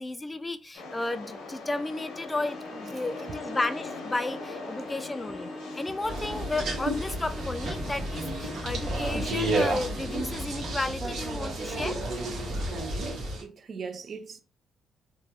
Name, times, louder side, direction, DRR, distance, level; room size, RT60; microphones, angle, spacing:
voice 1, 0.0-12.0, left 2 dB, 15° left, 0.3 m, -33 dB
sound 1, 0.7-10.4, left 2 dB, 80° left, 0.8 m, -42 dB
Musical instrument, 2.0-10.5, left 1 dB, 15° right, 1.3 m, -44 dB
sound 2, 6.0-13.4, right 1 dB, 70° right, 1.1 m, -31 dB
voice 2, 13.4-14.4, right 5 dB, 50° right, 0.5 m, -40 dB
3.1 x 2.2 x 2.8 m
cardioid pair, 90°, 0 cm